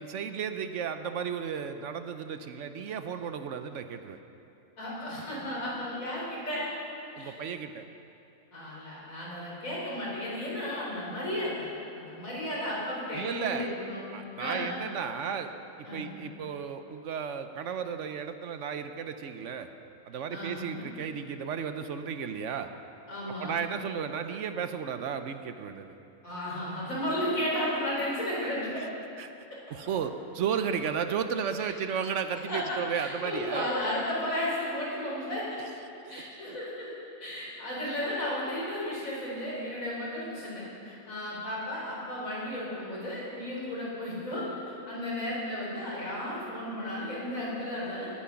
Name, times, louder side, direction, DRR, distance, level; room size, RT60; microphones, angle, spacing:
voice 1, 0.0-4.2 7.2-7.8 13.1-13.7 14.1-15.5 15.8-19.7 20.1-22.7 23.4-25.9 28.8-28.9 29.2-29.3 29.7-33.7 35.6-35.7 36.0-36.6, right 7 dB, 70° right, 9 dB, 1.0 m, -34 dB
voice 2, 4.8-6.7 7.2-7.3 8.5-11.7 12.0-14.1 14.4-14.7 15.8-16.1 20.3-20.9 23.1-23.6 26.2-28.9 31.6-31.7 32.5-35.6 36.1-36.9 37.2-48.1, left 1 dB, 90° left, -6 dB, 4.5 m, -34 dB
18.0 x 8.9 x 5.9 m, 2.8 s
omnidirectional pair, 1.4 m